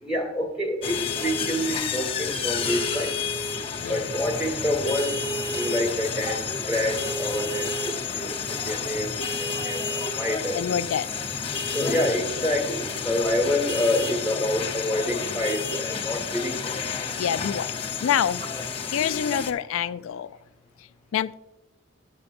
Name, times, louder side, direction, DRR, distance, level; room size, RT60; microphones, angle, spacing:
voice 1, 0.0-3.2 3.9-5.2 5.5-10.6 11.7-16.7, left 1 dB, 5° right, 0 dB, 1.7 m, -27 dB
sound 1, 0.8-19.5, left 5 dB, 30° left, 0.8 m, -30 dB
voice 2, 3.8-4.1 10.5-11.2 17.2-17.7 18.0-18.4 18.9-20.4 20.8-21.3, left 8 dB, 75° left, 13 dB, 0.3 m, -27 dB
13.5 x 7.1 x 2.5 m, 1.0 s
head